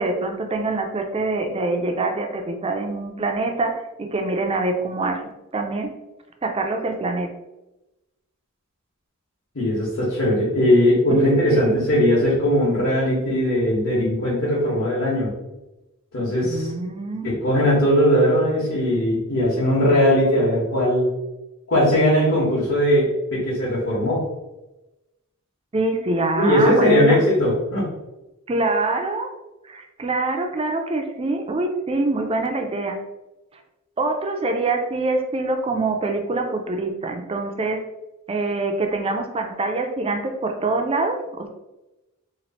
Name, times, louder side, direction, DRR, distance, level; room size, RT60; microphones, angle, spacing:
voice 1, 0.0-5.9 6.4-7.3 11.1-11.8 16.4-17.3 25.7-27.2 28.5-29.3 29.7-33.0 34.0-37.9 38.3-41.5, right 2 dB, 25° right, 5 dB, 0.4 m, -25 dB
voice 2, 9.5-15.3 16.1-16.7 17.2-21.1 21.7-24.3 26.3-27.9, equal, 65° left, -9 dB, 1.3 m, -19 dB
3.1 x 2.4 x 4.0 m, 0.98 s
head